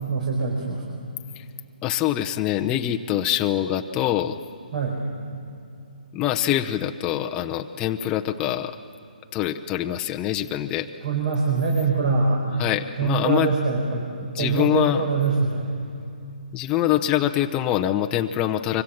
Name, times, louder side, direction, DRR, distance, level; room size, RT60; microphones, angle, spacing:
voice 1, 0.1-0.8 4.7-5.0 11.0-12.4 13.0-14.1 14.4-15.7, right 4 dB, 60° right, -1 dB, 5.0 m, -23 dB
voice 2, 1.8-4.4 6.1-8.7 9.3-10.9 12.5-13.5 14.3-15.1 16.5-18.8, left 12 dB, 20° left, 4 dB, 0.8 m, -24 dB
25.0 x 25.0 x 7.3 m, 2.6 s
hypercardioid pair, 150°, 5 cm